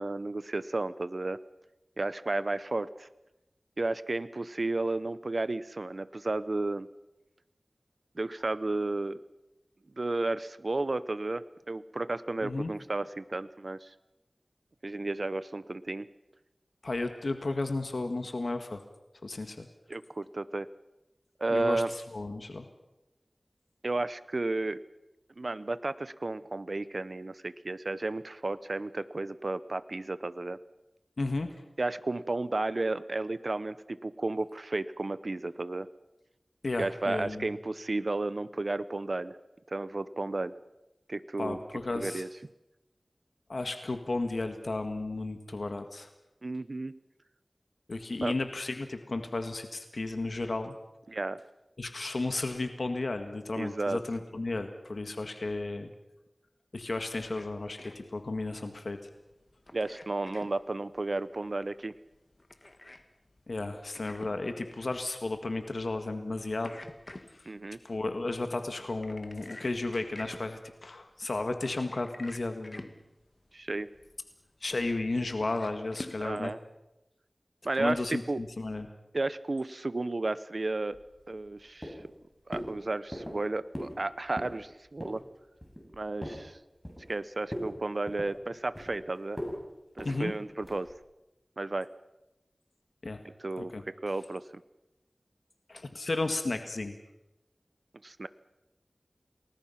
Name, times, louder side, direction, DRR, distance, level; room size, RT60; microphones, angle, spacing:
voice 1, 0.0-1.4 2.0-3.1 3.8-6.9 8.2-9.2 10.0-13.9 14.8-16.1 19.9-20.7 21.4-21.9 23.8-24.8 25.4-30.6 31.8-35.9 36.8-39.4 39.7-40.5 41.1-41.6 41.9-42.3 46.4-47.0 48.2-48.3 51.1-51.4 53.6-54.0 59.7-61.9 67.5-67.8 73.5-73.9 76.2-76.6 77.6-78.4 79.1-81.0 81.3-82.0 82.5-85.2 85.9-86.6 87.1-89.4 90.0-90.9 91.6-91.9 93.4-94.5 98.0-98.3, right 2 dB, 60° right, 15 dB, 0.7 m, -33 dB
voice 2, 16.8-18.8 19.2-19.7 21.5-22.7 31.2-31.5 36.6-37.5 41.4-42.2 43.5-46.1 47.9-50.7 51.8-55.9 56.7-59.0 63.5-66.7 67.4-67.5 67.8-72.9 74.6-76.5 77.8-78.9 90.0-90.3 93.0-93.2 93.6-93.8 95.7-96.9, left 2 dB, 75° left, 7 dB, 1.8 m, -33 dB
sound 1, 56.8-76.3, left 2 dB, 40° left, 1.9 m, -51 dB
sound 2, 80.9-81.5 81.8-82.2 82.5-82.7 83.1-83.4 83.7-84.0 84.3-84.6 85.0-85.2 85.6-86.4 86.8-87.2 87.5-87.7 88.1-89.0 89.4-89.6 90.0-90.2 90.6-90.9, equal, 10° left, 7.6 m, -39 dB
29.5 x 20.0 x 5.8 m, 0.96 s
wide cardioid pair, 55°, 0 cm